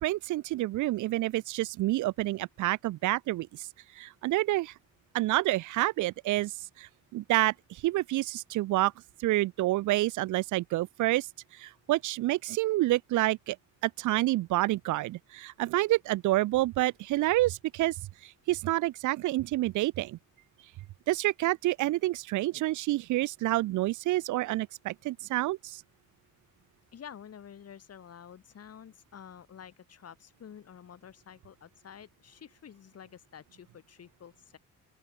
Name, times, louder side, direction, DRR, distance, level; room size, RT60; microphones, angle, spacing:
voice 1, 0.0-3.5 4.0-4.7 5.1-6.5 6.8-8.9 9.2-11.3 11.6-13.6 13.8-17.9 18.5-20.2 21.1-25.8, right 17 dB, 75° right, 0.6 m, -28 dB
voice 2, 26.9-34.6, left 8 dB, 55° left, 4.4 m, -49 dB
open air
cardioid pair, 90°, 30 cm